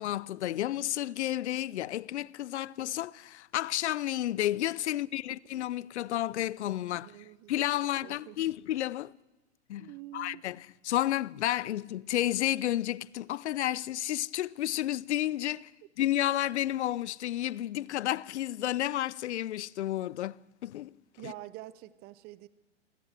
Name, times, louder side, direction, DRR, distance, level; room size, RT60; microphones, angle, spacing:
voice 1, 0.0-7.2 7.5-9.1 9.7-15.7 16.0-20.9 21.2-21.3, left 13 dB, 65° left, 0.7 m, -31 dB
voice 2, 6.9-7.5 8.0-8.5 9.8-10.4 21.2-22.5, right 17 dB, 25° right, 0.7 m, -46 dB
27.0 x 13.5 x 8.0 m
hypercardioid pair, 130°, 36 cm